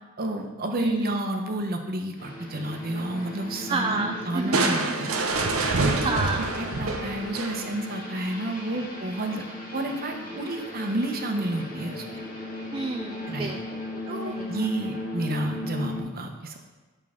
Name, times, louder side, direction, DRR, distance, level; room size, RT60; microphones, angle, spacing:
voice 1, 0.2-5.1 5.5-6.3 6.6-9.4 9.7-12.2 13.3-13.5 14.1-16.6, right 1 dB, 45° right, 4 dB, 0.8 m, -30 dB
voice 2, 0.8-1.1 3.7-4.9 5.7-6.5 6.8-7.0 12.7-14.7, right 3 dB, 25° right, 4 dB, 0.3 m, -31 dB
sound 1, 2.2-16.0, left 1 dB, 45° left, 1.4 m, -37 dB
Crushing, 4.5-7.9, right 3 dB, 85° right, 0.7 m, -26 dB
8.5 x 5.5 x 3.6 m, 1.3 s
head